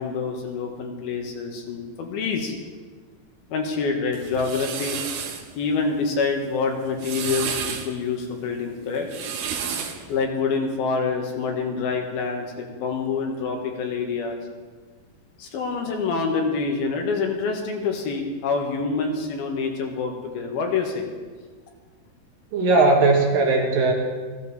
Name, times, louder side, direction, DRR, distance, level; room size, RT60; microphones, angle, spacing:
voice 1, 0.0-2.5 3.5-5.0 5.5-9.1 10.1-14.4 15.4-21.1, left 4 dB, 85° left, 2 dB, 3.5 m, -26 dB
sound 1, 4.1-5.4 6.8-7.9 8.9-10.0, right 7 dB, 85° right, 3.1 m, -31 dB
voice 2, 22.5-23.9, right 3 dB, 70° right, 1 dB, 3.2 m, -18 dB
16.0 x 14.5 x 4.3 m, 1.5 s
omnidirectional pair, 4.3 m